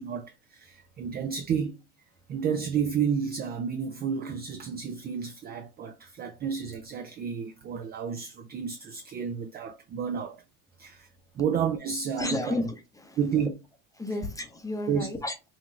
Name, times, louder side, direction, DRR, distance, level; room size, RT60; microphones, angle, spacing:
voice 1, 0.0-1.8 2.3-10.4 10.8-11.1 11.3-12.6 13.2-13.5 14.9-15.1, right 7 dB, 25° right, 0.4 m, -31 dB
voice 2, 12.2-13.2 14.0-15.3, left 2 dB, 10° left, 0.7 m, -32 dB
5.7 x 3.0 x 2.4 m
supercardioid pair, 120°, 44 cm